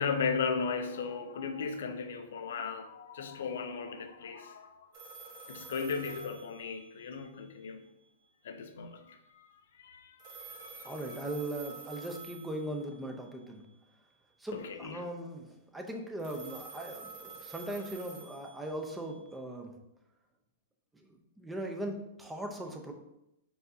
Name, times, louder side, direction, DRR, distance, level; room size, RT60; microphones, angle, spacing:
voice 1, 0.0-4.9 5.5-7.9 8.4-10.9 14.5-15.1, left 5 dB, 75° left, 0.6 m, -36 dB
sound 1, 4.9-7.2 10.2-13.1 16.2-19.1, right 4 dB, 45° right, 1.6 m, -48 dB
voice 2, 10.8-13.6 14.4-19.7 20.9-21.1 21.4-22.9, right 1 dB, 5° right, 0.6 m, -39 dB
4.6 x 3.8 x 2.7 m
hypercardioid pair, 130°, 0 cm